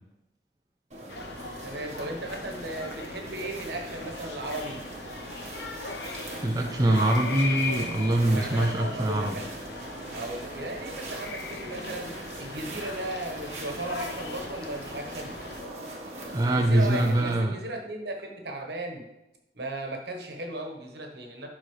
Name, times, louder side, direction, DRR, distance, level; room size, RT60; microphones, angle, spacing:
sound 1, 0.9-17.3, right 1 dB, 40° right, 1.3 m, -41 dB
sound 2, 1.1-15.6, left 3 dB, 75° left, 0.9 m, -38 dB
voice 1, 1.6-4.8 8.3-9.5 10.1-15.4 16.5-19.0 19.5-21.5, right 1 dB, 70° right, 2 dB, 1.2 m, -36 dB
voice 2, 6.4-9.4 16.3-17.6, right 1 dB, 20° right, 1 dB, 0.5 m, -24 dB
11.0 x 3.9 x 3.2 m, 0.90 s
head